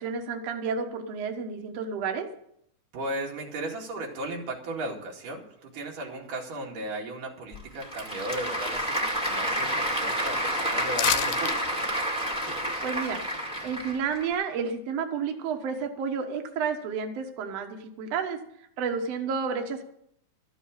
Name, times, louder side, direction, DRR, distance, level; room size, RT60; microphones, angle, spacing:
voice 1, 0.0-2.3 12.8-13.2 13.6-18.4 18.8-19.8, right 6 dB, 60° right, 4 dB, 2.1 m, -31 dB
voice 2, 2.9-11.8, right 2 dB, 90° right, -1 dB, 3.9 m, -36 dB
Applause / Crowd, 7.5-14.3, equal, ahead, 1.4 m, -29 dB
sound 1, 10.9-11.5 11.9-12.0, left 13 dB, 80° left, 2.1 m, -27 dB
13.5 x 7.2 x 8.6 m, 0.73 s
omnidirectional pair, 3.6 m